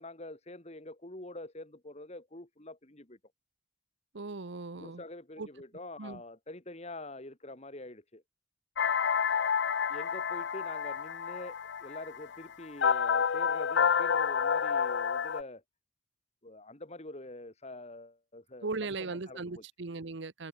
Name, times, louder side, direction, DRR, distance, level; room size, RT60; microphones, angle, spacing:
voice 1, 0.0-3.2 4.7-8.2 9.9-15.6 16.4-18.7 18.9-19.6, left 2 dB, 35° left, 2.4 m, -45 dB
voice 2, 4.1-5.0 5.4-5.5 6.0-6.2 18.6-20.5, right 3 dB, 65° right, 0.9 m, -38 dB
sound 1, 8.8-15.4, left 6 dB, 60° left, 0.5 m, -29 dB
head